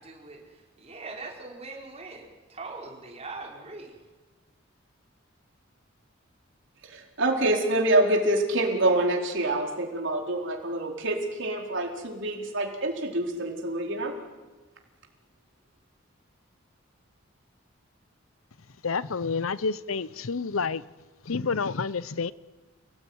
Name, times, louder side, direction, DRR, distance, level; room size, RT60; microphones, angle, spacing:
voice 1, 0.0-4.0, right 3 dB, 30° right, 5.3 m, -42 dB
voice 2, 6.8-14.2, right 1 dB, 65° right, 4.3 m, -26 dB
voice 3, 18.8-20.8 21.2-22.3, left 4 dB, 90° left, 0.8 m, -29 dB
29.0 x 19.0 x 9.6 m
head